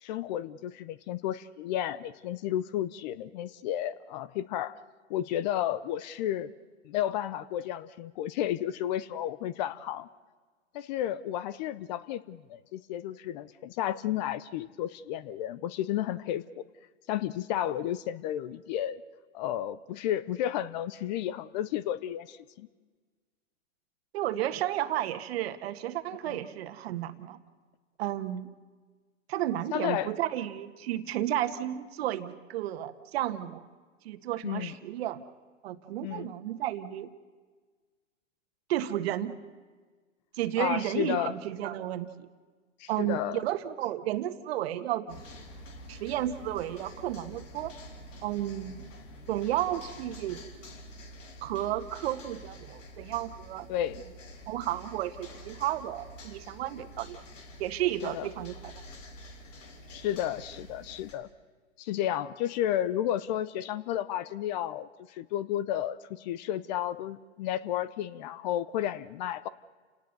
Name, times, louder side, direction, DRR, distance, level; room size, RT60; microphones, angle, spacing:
voice 1, 0.0-4.8 5.1-6.5 6.8-10.1 10.7-16.6 17.1-19.0 19.3-22.7 26.3-26.4 29.7-30.1 34.4-34.8 36.0-36.3 40.6-41.3 42.8-43.4 53.7-54.0 58.0-58.3 59.9-61.3 61.8-69.5, left 12 dB, 35° left, 17 dB, 0.7 m, -32 dB
voice 2, 24.1-27.4 28.0-28.5 29.3-33.6 34.0-35.2 35.6-37.1 38.7-39.3 40.3-42.3 42.9-45.2 45.9-47.7 48.2-48.9 49.3-50.4 51.4-53.7 54.5-57.2 57.6-58.7, right 12 dB, 50° right, 10 dB, 1.6 m, -32 dB
sound 1, 45.1-61.2, equal, 75° left, 4.3 m, -47 dB
30.0 x 18.5 x 6.8 m, 1.4 s
hypercardioid pair, 130°, 38 cm